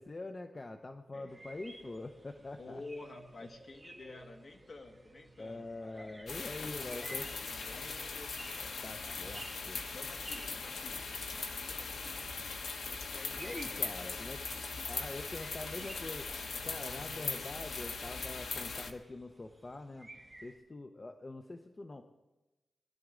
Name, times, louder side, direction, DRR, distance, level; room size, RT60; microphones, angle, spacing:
voice 1, 0.0-2.8 5.4-7.3 8.8-9.9 13.3-14.4 14.9-16.3 16.6-20.1 20.4-22.1, left 2 dB, 25° left, 6 dB, 0.7 m, -44 dB
voice 2, 1.1-1.4 1.7-1.8 2.6-6.1 6.6-8.4 9.0-9.4 9.9-12.5 13.1-14.2 14.6-14.7 16.5-17.4, left 2 dB, 45° left, 4 dB, 1.5 m, -51 dB
sound 1, 1.3-20.5, right 2 dB, 15° right, 1.4 m, -55 dB
sound 2, 6.3-18.9, left 4 dB, 80° left, 1.1 m, -40 dB
20.5 x 11.5 x 3.8 m, 1.1 s
wide cardioid pair, 140°, 0 cm